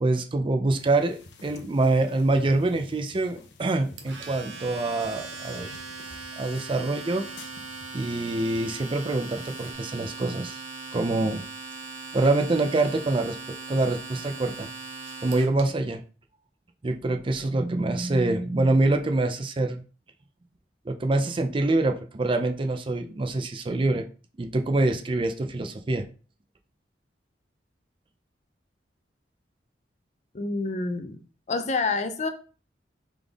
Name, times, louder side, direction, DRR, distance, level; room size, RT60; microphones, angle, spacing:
voice 1, 0.0-5.7 6.4-7.2 7.9-10.6 10.9-11.4 12.1-13.4 13.7-14.7 15.2-16.0 16.8-19.8 20.9-24.0 24.4-26.1, right 2 dB, 30° right, 6 dB, 0.4 m, -25 dB
sound 1, 0.8-9.7, left 3 dB, 75° left, 0.8 m, -50 dB
Domestic sounds home sounds, 4.0-15.6, right 4 dB, 80° right, 0.8 m, -39 dB
voice 2, 30.3-31.2 31.5-32.3, left 3 dB, 40° left, 8 dB, 0.5 m, -27 dB
3.8 x 3.4 x 3.5 m, 0.38 s
head